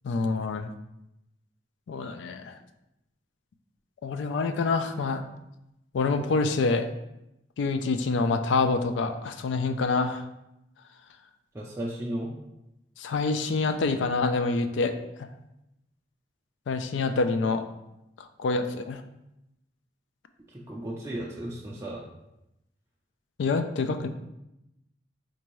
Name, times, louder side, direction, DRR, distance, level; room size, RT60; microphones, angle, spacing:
voice 1, 0.0-0.7 1.9-2.6 4.0-5.3 5.9-6.9 7.6-10.3 13.0-14.9 16.7-17.6 18.2-19.0 23.4-24.1, left 3 dB, 80° left, 8 dB, 0.3 m, -26 dB
voice 2, 11.5-12.3 20.5-22.0, right 1 dB, 15° right, -4 dB, 0.4 m, -35 dB
4.5 x 2.6 x 3.0 m, 0.89 s
head